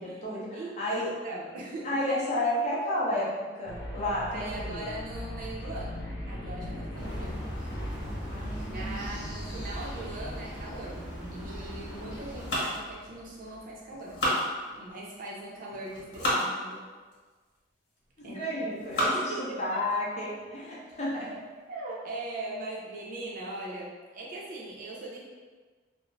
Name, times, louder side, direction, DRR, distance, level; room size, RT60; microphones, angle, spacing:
voice 1, 0.0-1.1 1.8-4.9 8.3-9.2 18.3-21.3, left 1 dB, 40° left, -6 dB, 0.6 m, -32 dB
voice 2, 1.2-2.2 4.3-6.0 6.3-7.4 8.7-14.2 14.8-16.9 18.2-18.6 19.0-19.8 21.7-25.3, right 2 dB, 50° right, -4 dB, 0.6 m, -40 dB
sound 1, 3.6-13.6, equal, 90° left, 0.6 m, -40 dB
sound 2, 6.9-12.6, equal, 5° right, 0.6 m, -40 dB
sound 3, 12.3-13.6 13.9-15.1 15.7-16.5 17.1-17.2 18.0-18.3 18.7-19.4 19.9-20.0 20.4-20.5 20.9-21.2, equal, 60° left, 1.1 m, -31 dB
2.4 x 2.1 x 3.1 m, 1.4 s
head